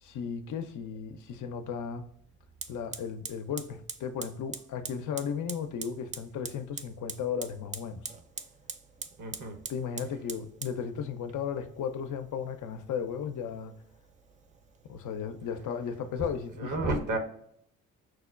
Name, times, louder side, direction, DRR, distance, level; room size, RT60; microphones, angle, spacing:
voice 1, 0.0-2.1 2.7-8.1 9.7-13.7 14.8-17.0, left 7 dB, 50° left, 8 dB, 0.5 m, -35 dB
Fire, 1.6-1.7 2.6-16.6, right 5 dB, 20° right, 0.3 m, -45 dB
voice 2, 9.2-9.6 16.6-17.2, right 3 dB, 50° right, 4 dB, 1.0 m, -31 dB
6.0 x 2.1 x 2.3 m, 0.70 s
hypercardioid pair, 45°, 39 cm